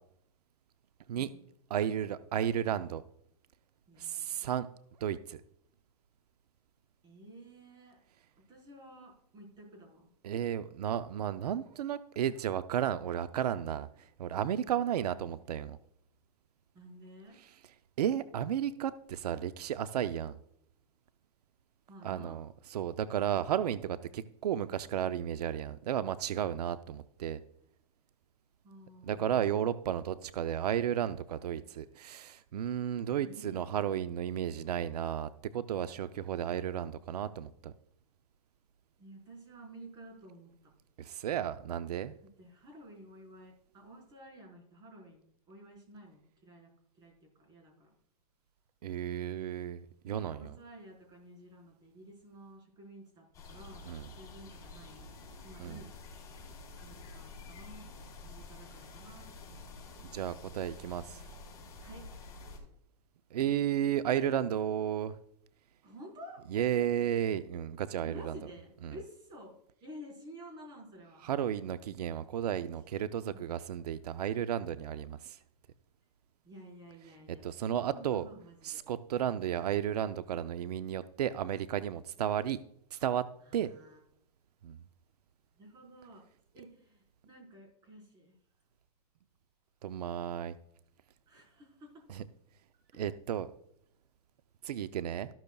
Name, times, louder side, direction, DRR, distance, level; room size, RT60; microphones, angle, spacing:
voice 1, 1.1-1.5 3.9-4.5 7.0-8.0 8.4-10.1 16.7-17.4 21.9-22.4 28.6-29.5 33.1-33.9 39.0-40.7 42.2-46.7 47.0-47.9 50.0-53.9 54.2-55.1 55.4-55.9 56.8-57.8 58.2-59.5 61.8-62.0 65.8-66.5 68.0-69.5 69.8-71.2 73.2-73.4 76.4-78.8 83.4-84.0 85.5-86.2 86.5-88.3 91.3-92.0 92.9-93.1, right 1 dB, 20° right, 0 dB, 4.4 m, -52 dB
voice 2, 1.7-3.0 4.0-4.7 5.0-5.4 10.2-15.8 17.4-17.5 18.0-20.4 22.0-27.4 29.0-37.7 41.0-42.1 48.8-50.5 53.9-54.1 55.6-55.8 60.1-61.2 63.3-65.2 66.5-68.3 68.8-68.9 71.2-75.4 77.4-78.3 78.6-82.6 82.9-83.2 83.5-83.7 84.6-84.8 89.8-90.5 92.1-92.2 92.9-93.5 94.6-95.3, right 10 dB, 90° right, 12 dB, 0.6 m, -33 dB
sound 1, 53.3-62.6, left 3 dB, 15° left, 3.6 m, -49 dB
13.5 x 12.0 x 2.3 m, 0.73 s
supercardioid pair, 155°, 19 cm